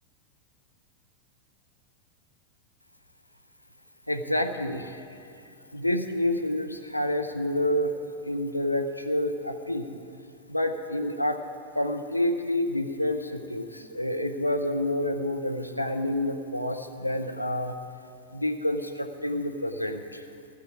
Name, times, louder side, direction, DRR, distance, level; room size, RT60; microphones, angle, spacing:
voice 1, 4.1-5.0 5.7-7.9 8.2-10.0 10.5-11.4 11.7-17.7 18.3-20.2, left 1 dB, 90° left, 4 dB, 0.9 m, -28 dB
14.0 x 7.4 x 9.9 m, 2.4 s
figure-of-eight pair, 90°, 0 cm